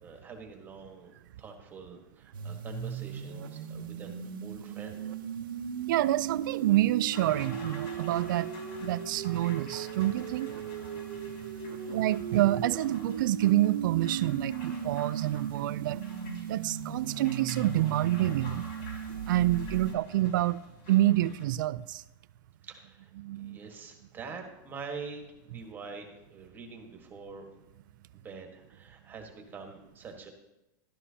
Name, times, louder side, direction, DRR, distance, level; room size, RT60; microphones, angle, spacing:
voice 1, 0.0-1.1 1.4-5.1 11.7-12.0 22.6-27.5 28.1-30.3, right 4 dB, 15° right, 1.5 m, -45 dB
sound 1, 2.3-19.9, right 8 dB, 90° right, 1.0 m, -37 dB
voice 2, 5.9-8.5 8.8-10.5 11.9-16.0 16.5-18.6 19.3-20.6 20.9-22.0 23.2-23.6, right 14 dB, 70° right, 0.4 m, -27 dB
sound 2, 7.1-21.5, left 2 dB, 50° left, 4.2 m, -50 dB
13.0 x 12.5 x 2.8 m
supercardioid pair, 150°, 11 cm